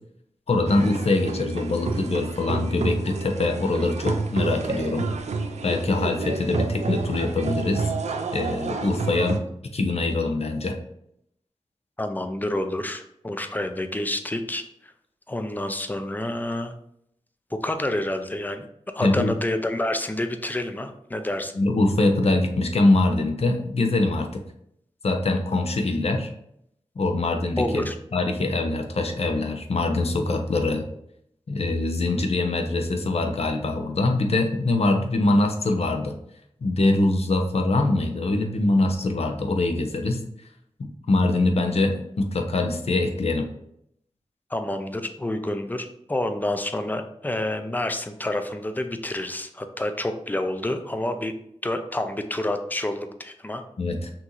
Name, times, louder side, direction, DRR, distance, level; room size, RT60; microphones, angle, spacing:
voice 1, 0.5-5.1 5.6-7.9 8.3-9.4 9.7-10.8 19.0-19.3 21.5-24.3 25.0-26.3 27.0-27.8 28.1-30.9 31.5-36.2 36.6-40.2 40.8-43.5 53.8-54.1, left 2 dB, 65° left, 4 dB, 0.7 m, -23 dB
sound 1, 0.6-9.4, right 4 dB, 85° right, 0.5 m, -30 dB
voice 2, 12.0-14.9 15.3-16.7 17.5-18.7 18.9-21.5 27.6-28.0 44.5-51.3 51.6-53.6, left 1 dB, 15° left, 7 dB, 0.5 m, -28 dB
5.9 x 2.7 x 3.0 m, 0.73 s
wide cardioid pair, 65°, 11 cm